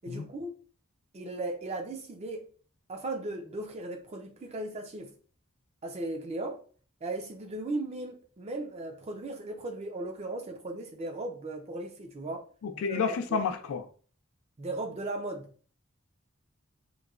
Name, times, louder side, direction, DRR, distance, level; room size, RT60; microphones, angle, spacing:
voice 1, 0.0-0.5 1.1-2.4 2.9-5.1 5.8-6.6 7.0-12.4 12.7-13.4 14.6-15.5, right 2 dB, 30° right, 0.4 m, -37 dB
voice 2, 12.6-13.8, left 5 dB, 80° left, 0.4 m, -30 dB
3.0 x 2.2 x 2.4 m
head